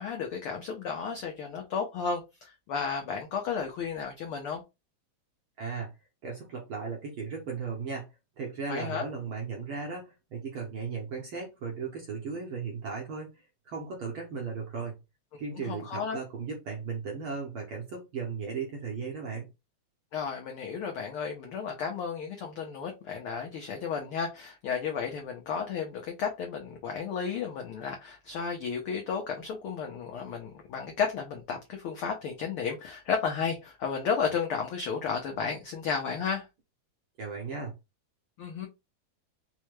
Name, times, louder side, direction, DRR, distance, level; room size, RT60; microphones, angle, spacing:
voice 1, 0.0-4.6 8.7-9.0 15.7-16.2 20.1-36.5 38.4-38.7, left 6 dB, 90° left, 1.2 m, -33 dB
voice 2, 5.6-5.9 6.2-8.1 8.4-15.0 15.4-19.5 37.2-37.7, right 5 dB, 65° right, 1.3 m, -36 dB
4.6 x 2.1 x 3.1 m
omnidirectional pair, 3.3 m